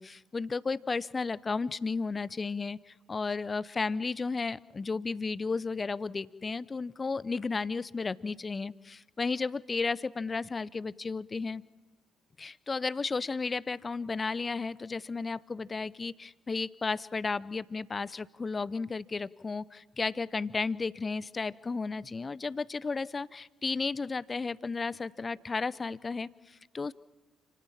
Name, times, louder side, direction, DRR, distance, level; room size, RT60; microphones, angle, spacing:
voice 1, 0.0-11.6 12.4-26.9, left 4 dB, 30° left, 21 dB, 0.7 m, -33 dB
29.5 x 17.5 x 7.5 m, 1.2 s
figure-of-eight pair, 45°, 0 cm